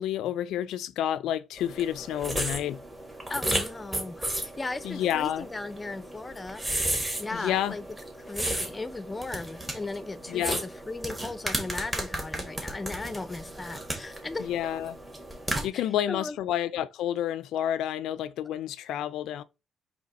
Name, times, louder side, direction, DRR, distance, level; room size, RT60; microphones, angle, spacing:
voice 1, 0.0-2.8 4.8-5.5 7.3-7.8 10.3-10.6 14.4-15.0 15.6-19.4, left 11 dB, 85° left, 0.3 m, -29 dB
sound 1, 1.6-15.7, right 1 dB, 15° right, 1.6 m, -34 dB
voice 2, 3.3-6.6 7.2-7.9 8.2-14.5 15.7-16.4, left 3 dB, 20° left, 0.5 m, -37 dB
4.1 x 2.9 x 4.1 m
cardioid pair, 90°, 0 cm